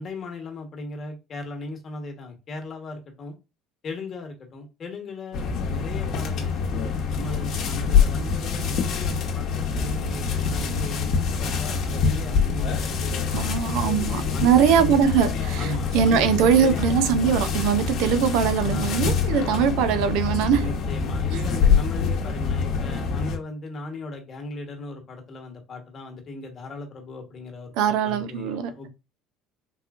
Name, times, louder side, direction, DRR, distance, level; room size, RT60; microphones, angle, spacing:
voice 1, 0.0-3.3 3.8-6.7 7.1-13.8 14.3-14.9 15.6-16.8 17.2-17.4 18.7-19.4 20.6-28.9, left 3 dB, 40° left, 1.2 m, -37 dB
sound 1, 5.3-23.4, left 6 dB, 60° left, 0.9 m, -25 dB
voice 2, 13.3-20.7 27.7-28.9, right 8 dB, 75° right, 0.5 m, -22 dB
3.8 x 2.9 x 2.4 m
supercardioid pair, 105°, 0 cm